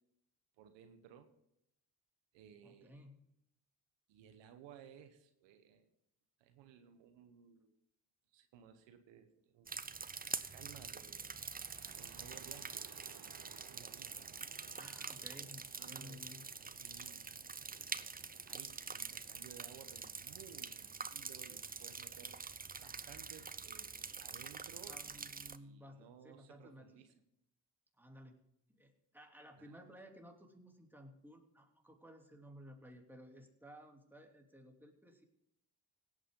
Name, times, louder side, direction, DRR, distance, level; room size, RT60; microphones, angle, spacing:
voice 1, 0.6-1.3 2.3-3.0 4.1-5.9 6.4-7.7 8.3-9.7 10.5-11.4 12.0-13.1 13.7-14.3 15.8-16.3 16.6-17.3 17.6-18.1 18.4-22.4 22.8-27.1 29.6-29.9, right 8 dB, 90° right, 8 dB, 1.1 m, -58 dB
voice 2, 2.6-3.2 14.7-16.4 24.9-27.2 28.0-28.4 28.7-35.2, equal, 5° right, 2 dB, 2.9 m, -56 dB
sound 1, 9.7-25.6, right 5 dB, 20° right, 0.7 m, -46 dB
sound 2, 11.2-19.0, right 9 dB, 60° right, 1.0 m, -62 dB
17.0 x 8.7 x 3.8 m, 0.78 s
supercardioid pair, 50°, 43 cm